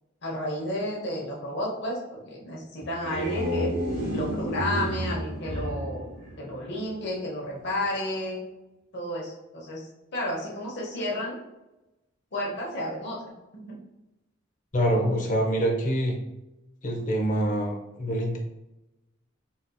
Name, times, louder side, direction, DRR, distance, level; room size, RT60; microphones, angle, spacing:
voice 1, 0.2-3.7 4.1-6.1 6.4-8.4 8.9-11.4 12.3-13.2 13.5-13.8, left 1 dB, 60° left, -3 dB, 1.0 m, -32 dB
sound 1, 2.8-7.0, equal, 80° right, 1.0 m, -31 dB
voice 2, 14.7-16.1 16.8-18.4, right 1 dB, 40° left, 1 dB, 0.7 m, -25 dB
4.0 x 2.7 x 2.2 m, 0.96 s
head